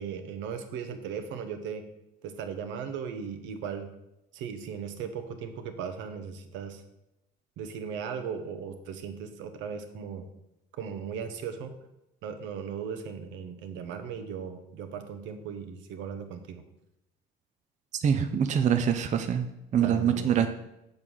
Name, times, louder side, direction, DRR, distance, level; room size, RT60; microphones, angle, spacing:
voice 1, 0.0-1.8 2.2-3.9 4.3-6.8 7.6-10.3 10.8-11.8 12.2-16.6 19.8-20.5, right 7 dB, 75° right, 7 dB, 0.9 m, -37 dB
voice 2, 18.0-19.5 19.7-20.5, right 8 dB, 40° right, 8 dB, 0.5 m, -24 dB
6.5 x 3.7 x 6.1 m, 0.88 s
supercardioid pair, 85°, 19 cm